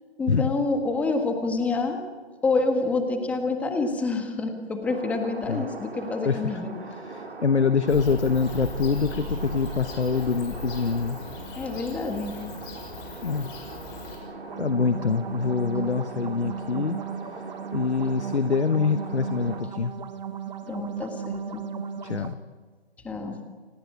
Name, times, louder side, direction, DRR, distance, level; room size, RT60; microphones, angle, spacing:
voice 1, 0.2-2.0 2.4-6.7 11.5-12.4 20.7-21.6 23.0-23.4, left 3 dB, 5° left, 5 dB, 1.5 m, -27 dB
sound 1, 4.8-19.6, right 3 dB, 70° right, 3.8 m, -41 dB
voice 2, 6.2-11.2 13.2-13.5 14.6-17.0 17.7-19.9 22.0-22.4, left 5 dB, 80° left, 11 dB, 1.3 m, -25 dB
Bird / Cricket, 7.9-14.2, left 2 dB, 20° left, 6.3 m, -38 dB
sound 2, 14.4-22.3, right 7 dB, 40° right, 1.4 m, -35 dB
29.5 x 18.5 x 8.8 m, 1.5 s
figure-of-eight pair, 150°, 33 cm